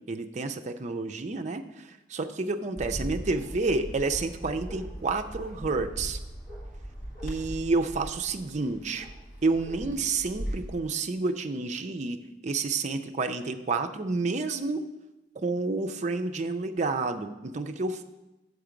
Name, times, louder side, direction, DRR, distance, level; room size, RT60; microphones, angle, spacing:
voice 1, 0.1-6.2 7.2-9.1 9.4-14.8 15.4-18.0, right 3 dB, 40° right, 6 dB, 0.5 m, -30 dB
Bark, 2.8-10.7, equal, 45° left, 1.6 m, -39 dB
7.0 x 6.6 x 5.0 m, 1.0 s
head